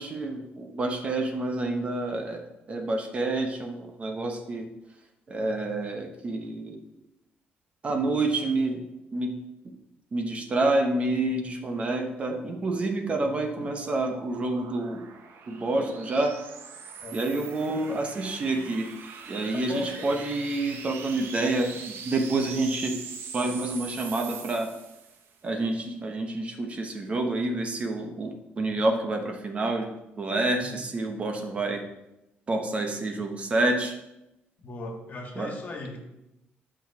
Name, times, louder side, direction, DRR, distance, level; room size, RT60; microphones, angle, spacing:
voice 1, 0.0-2.4 2.7-4.7 5.3-6.8 7.8-8.8 9.1-9.3 10.1-15.1 15.5-16.3 17.1-18.9 19.3-21.7 22.0-23.0 23.3-24.7 25.4-31.8 32.5-33.9 35.4-35.5, right 2 dB, 30° right, 4 dB, 1.1 m, -28 dB
sound 1, 13.3-25.3, right 6 dB, 70° right, 1.1 m, -42 dB
voice 2, 19.5-20.2 30.6-30.7 34.6-36.0, left 2 dB, 45° left, 3 dB, 1.7 m, -37 dB
10.0 x 6.3 x 4.8 m, 0.92 s
cardioid pair, 145°, 4 cm